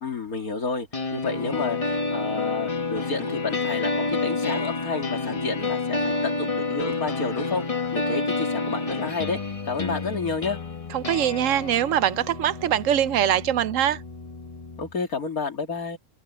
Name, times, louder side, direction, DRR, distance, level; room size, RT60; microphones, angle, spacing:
voice 1, 0.0-0.9 1.1-7.6 7.9-9.4 9.7-10.6 14.8-16.0, left 4 dB, 85° left, 2.9 m, -30 dB
sound 1, 0.9-14.9, left 3 dB, 25° left, 1.1 m, -29 dB
sound 2, 6.6-11.1 12.0-12.1, left 8 dB, 70° left, 6.0 m, -56 dB
voice 2, 10.9-14.0, right 10 dB, 70° right, 0.9 m, -23 dB
open air
omnidirectional pair, 1.5 m